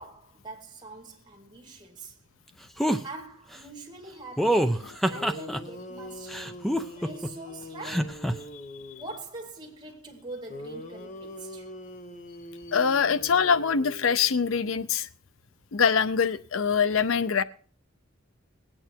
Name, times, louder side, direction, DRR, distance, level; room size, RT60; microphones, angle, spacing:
voice 1, 0.0-2.1 3.0-6.7 6.9-8.2 9.0-11.7, right 2 dB, 20° right, 2.1 m, -44 dB
sound 1, 2.8-3.0 4.4-5.6 6.3-7.3 7.8-8.3, equal, ahead, 0.6 m, -25 dB
sound 2, 5.1-9.2 10.5-14.5, equal, 40° left, 1.0 m, -43 dB
voice 2, 12.7-15.1 15.7-17.4, left 6 dB, 85° left, 0.6 m, -24 dB
20.0 x 8.8 x 4.5 m
head